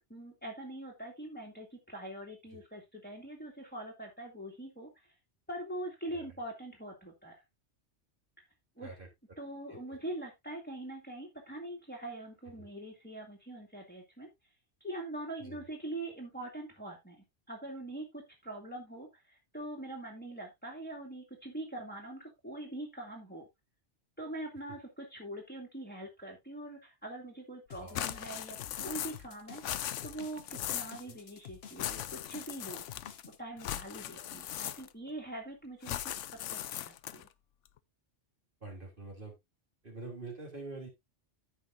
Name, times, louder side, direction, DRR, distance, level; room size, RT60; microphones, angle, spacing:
voice 1, 0.0-5.1 5.5-7.3 8.8-8.9 9.4-14.3 14.8-17.2 17.5-23.4 24.2-29.6 30.0-32.8 33.4-36.1 36.5-37.3, right 1 dB, 10° left, 0 dB, 2.4 m, -43 dB
sound 1, 27.7-33.4, left 8 dB, 60° left, 1.1 m, -51 dB
voice 2, 27.8-28.1 31.0-31.2 34.1-34.3 38.6-39.3 39.8-40.9, right 3 dB, 45° right, 0 dB, 3.5 m, -46 dB
sound 2, 27.9-29.3 29.5-31.0 31.8-33.2 33.6-35.1 35.8-37.3, left 11 dB, 85° left, 1.0 m, -39 dB
15.0 x 5.7 x 2.6 m, 0.20 s
omnidirectional pair, 1.2 m